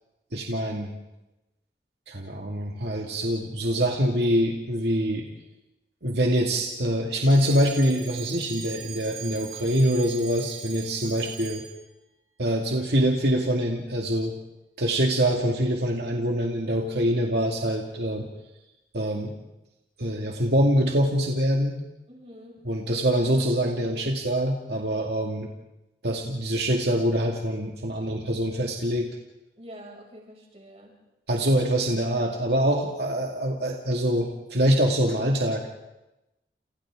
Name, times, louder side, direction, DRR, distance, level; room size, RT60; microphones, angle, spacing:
voice 1, 0.3-0.9 2.1-5.3 6.0-11.6 12.4-14.4 14.8-18.3 18.9-19.3 20.0-21.8 22.6-25.5 26.0-29.1 31.3-35.7, equal, 75° right, 0 dB, 2.2 m, -24 dB
Alarm, 7.2-11.9, right 9 dB, 55° right, 4.2 m, -41 dB
voice 2, 22.1-22.6 29.6-30.9, equal, 35° right, -1 dB, 6.2 m, -46 dB
29.5 x 29.0 x 3.8 m, 0.96 s
head